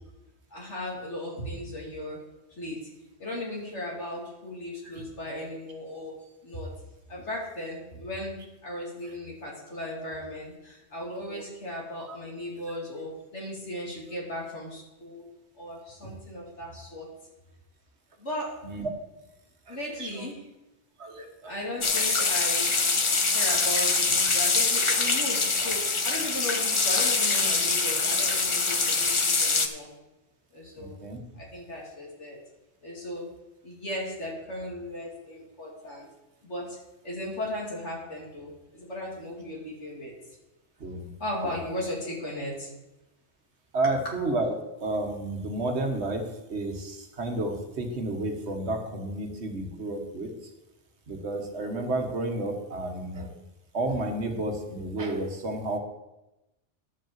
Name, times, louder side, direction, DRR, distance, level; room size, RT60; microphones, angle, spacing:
voice 1, 0.5-2.2 2.6-2.9 3.2-6.1 6.4-6.7 7.1-8.4 8.6-15.3 15.6-17.1 18.2-18.6 19.7-20.4 21.4-22.7 23.3-29.9 30.5-31.0 31.3-32.4 32.8-33.2 33.6-36.1 36.4-36.8 37.0-40.4 41.2-42.7, left 1 dB, 80° left, -3 dB, 3.1 m, -36 dB
voice 2, 19.7-20.2 21.0-21.5 21.8-21.9 30.8-31.2 40.8-41.1 41.4-41.5 43.7-44.5 44.8-46.2 46.5-50.3 51.1-53.3 53.7-55.8, right 2 dB, 70° right, 3 dB, 1.7 m, -31 dB
sound 1, 21.8-29.7, left 4 dB, 30° left, 0.7 m, -24 dB
11.0 x 5.5 x 7.4 m, 0.99 s
omnidirectional pair, 1.2 m